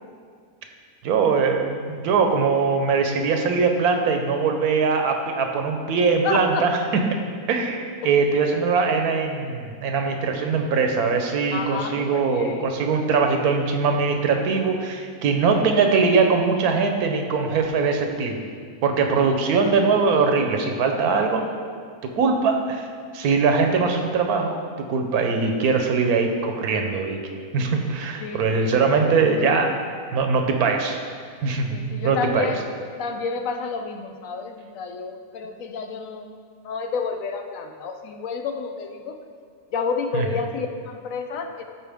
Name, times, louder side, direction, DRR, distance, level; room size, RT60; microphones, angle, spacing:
voice 1, 1.0-6.8 7.5-18.4 18.8-21.4 22.0-22.9 23.1-24.6 24.9-27.2 27.5-29.7 30.1-31.0 31.4-32.5 40.1-40.4, right 4 dB, 85° right, 4 dB, 1.3 m, -21 dB
voice 2, 6.2-6.7 11.5-12.7 28.2-28.8 31.7-32.6 33.0-36.3 36.6-39.1 39.7-41.6, left 5 dB, 70° left, 5 dB, 1.0 m, -30 dB
13.5 x 4.4 x 3.5 m, 2.1 s
omnidirectional pair, 1.5 m